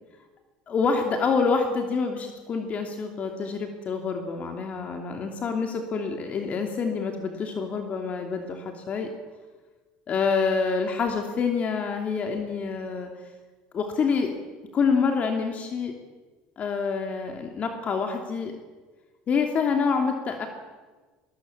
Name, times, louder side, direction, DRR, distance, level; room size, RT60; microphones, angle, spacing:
voice 1, 0.7-9.1 10.1-13.1 13.7-14.3 14.7-15.9 16.6-18.5 19.3-20.5, left 5 dB, 40° left, 4 dB, 2.8 m, -27 dB
21.5 x 21.5 x 7.2 m, 1.3 s
supercardioid pair, 95°, 4 cm